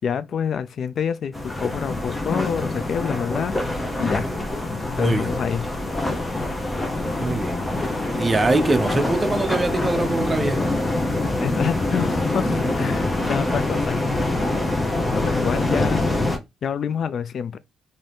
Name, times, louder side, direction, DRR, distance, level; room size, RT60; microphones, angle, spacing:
voice 1, 0.0-3.5 4.0-4.3 5.0-5.7 11.4-14.0 15.1-16.0 16.6-17.6, left 7 dB, 60° left, 0.3 m, -27 dB
sound 1, 1.3-16.4, left 2 dB, 20° left, 0.7 m, -25 dB
voice 2, 4.1-4.5 5.0-5.3 7.2-7.6 8.2-10.6, right 2 dB, 25° right, 0.5 m, -23 dB
2.7 x 2.6 x 3.4 m
cardioid pair, 90°, 0 cm